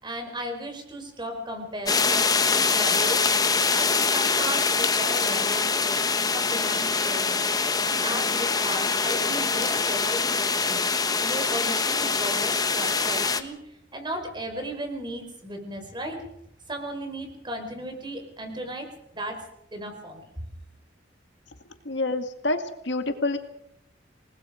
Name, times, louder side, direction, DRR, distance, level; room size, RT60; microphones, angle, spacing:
voice 1, 0.0-3.2 3.7-7.4 7.8-10.8 11.2-13.6 13.9-16.2 16.7-18.9 19.1-19.4 19.7-20.3, right 1 dB, 25° right, 4 dB, 4.9 m, -35 dB
sound 1, 1.9-13.4, left 4 dB, 20° left, 1.2 m, -24 dB
voice 2, 21.9-23.4, left 2 dB, 70° left, 6 dB, 2.1 m, -27 dB
28.0 x 19.5 x 5.1 m, 0.76 s
head